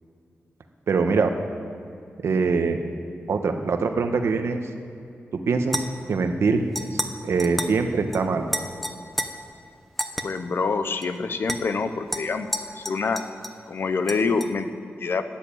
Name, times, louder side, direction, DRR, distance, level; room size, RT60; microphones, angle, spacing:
voice 1, 0.9-1.3 2.2-2.8 3.3-4.6 5.3-6.6 6.9-8.5, right 4 dB, 85° right, 6 dB, 1.2 m, -23 dB
sound 1, 5.7-6.1 6.8-7.1 7.4-7.8 8.1-8.2 8.5-9.3 10.0-10.2 11.0-11.1 11.5-11.6 12.1-13.6 14.1-14.5, equal, 5° left, 0.8 m, -31 dB
voice 2, 10.2-12.5 12.8-13.2 13.7-14.7 15.0-15.2, left 4 dB, 60° left, 10 dB, 0.8 m, -26 dB
13.0 x 9.4 x 9.0 m, 2.5 s
wide cardioid pair, 140°, 4 cm